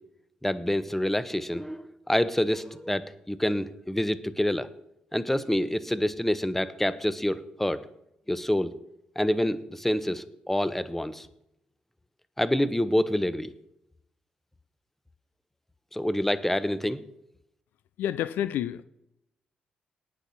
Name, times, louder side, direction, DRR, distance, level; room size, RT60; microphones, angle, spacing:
voice 1, 0.4-4.7 5.1-7.8 8.3-8.7 9.2-11.3 12.4-13.5 15.9-17.0, left 1 dB, 10° left, 14 dB, 1.0 m, -27 dB
voice 2, 18.0-18.8, left 11 dB, 75° left, 15 dB, 0.4 m, -29 dB
18.5 x 6.2 x 4.2 m, 0.82 s
hypercardioid pair, 45°, 3 cm